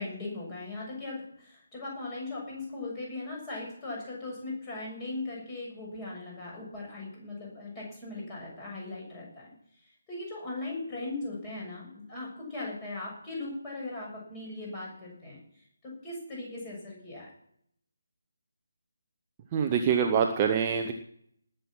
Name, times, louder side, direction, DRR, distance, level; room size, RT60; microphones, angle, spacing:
voice 1, 0.0-9.5 10.1-15.4 15.8-17.3, left 2 dB, 15° left, -4 dB, 7.2 m, -39 dB
voice 2, 19.5-20.9, right 7 dB, 20° right, 3 dB, 0.9 m, -25 dB
19.0 x 7.9 x 6.1 m, 0.68 s
figure-of-eight pair, 150°, 0 cm